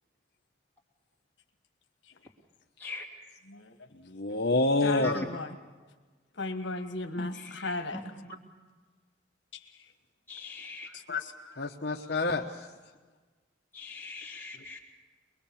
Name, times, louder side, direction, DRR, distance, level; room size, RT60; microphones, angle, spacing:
voice 1, 3.9-5.2 11.6-12.7, left 2 dB, 55° left, 1 dB, 1.0 m, -28 dB
voice 2, 4.8-5.5 6.4-8.0 11.1-11.6, left 3 dB, 75° left, 6 dB, 1.4 m, -35 dB
voice 3, 7.3-8.4 10.3-10.9 13.7-14.8, left 2 dB, 10° left, -3 dB, 3.1 m, -40 dB
23.0 x 22.5 x 7.1 m, 1.4 s
head